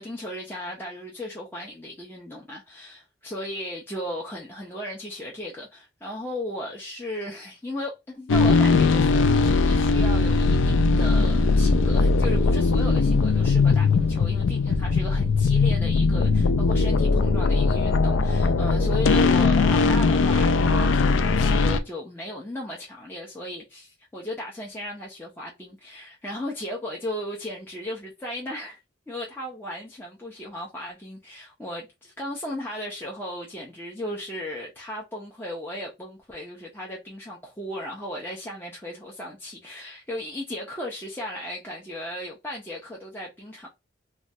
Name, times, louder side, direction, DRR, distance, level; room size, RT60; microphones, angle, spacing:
voice 1, 0.0-28.8 29.1-43.7, left 1 dB, 10° left, 0.5 m, -36 dB
sound 1, 8.3-21.8, left 4 dB, 85° left, 0.3 m, -20 dB
3.1 x 2.3 x 2.6 m
head